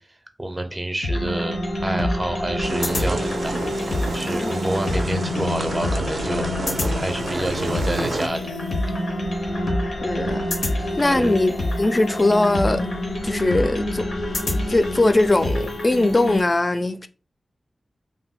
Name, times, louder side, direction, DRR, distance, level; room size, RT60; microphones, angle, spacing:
voice 1, 0.4-3.6 4.1-8.5 10.7-11.4, right 1 dB, 25° right, 0.6 m, -28 dB
sound 1, 1.0-16.4, left 1 dB, 85° left, 0.7 m, -26 dB
sound 2, 2.6-8.3, right 3 dB, 80° right, 0.4 m, -30 dB
voice 2, 9.8-10.4 11.0-12.8 13.2-14.1 14.7-17.1, left 2 dB, 35° left, 0.3 m, -20 dB
2.6 x 2.1 x 3.6 m
wide cardioid pair, 75°, 0 cm